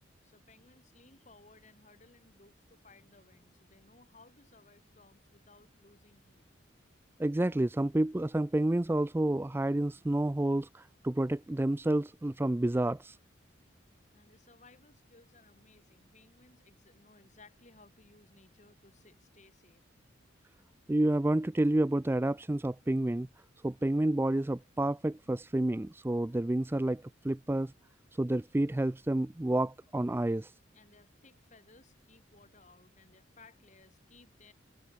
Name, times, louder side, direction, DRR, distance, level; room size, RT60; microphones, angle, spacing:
voice 1, 0.2-6.4 14.1-19.8 30.7-34.5, left 3 dB, 35° left, 6.4 m, -61 dB
voice 2, 7.2-13.2 20.9-23.3 23.6-27.7 28.2-30.5, right 1 dB, 10° right, 0.3 m, -29 dB
head